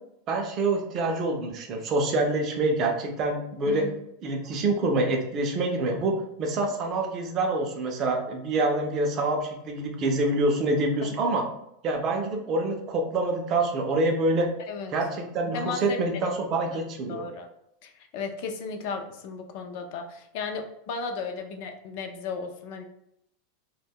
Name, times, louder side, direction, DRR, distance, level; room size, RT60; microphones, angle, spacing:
voice 1, 0.3-3.9 4.2-11.4 11.8-14.5 14.9-17.2, right 2 dB, 30° right, 3 dB, 0.4 m, -26 dB
voice 2, 15.5-16.3 17.1-17.5 17.8-22.8, left 4 dB, 50° left, 5 dB, 0.4 m, -35 dB
2.1 x 2.1 x 3.5 m, 0.79 s
supercardioid pair, 160°, 0 cm